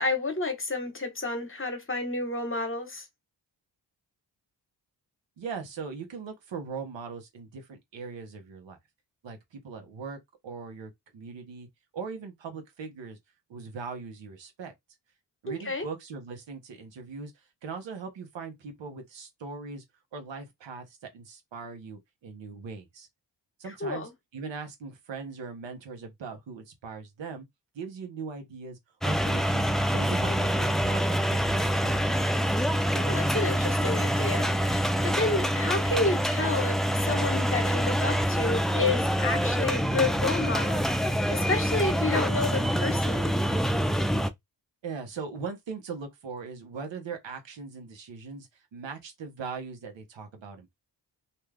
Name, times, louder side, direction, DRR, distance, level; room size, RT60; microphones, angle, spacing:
voice 1, 0.0-3.1 15.5-15.9 23.8-24.1 32.9-43.4, left 3 dB, 30° left, 1.0 m, -30 dB
voice 2, 5.4-8.8 9.2-11.7 11.9-13.2 13.5-14.7 15.4-17.3 17.6-19.8 20.1-23.1 23.6-27.4 27.7-28.8 29.0-32.0 44.8-50.8, right 5 dB, 75° right, 1.1 m, -40 dB
sound 1, 29.0-44.3, equal, ahead, 0.3 m, -26 dB
2.6 x 2.3 x 3.3 m
cardioid pair, 65°, 44 cm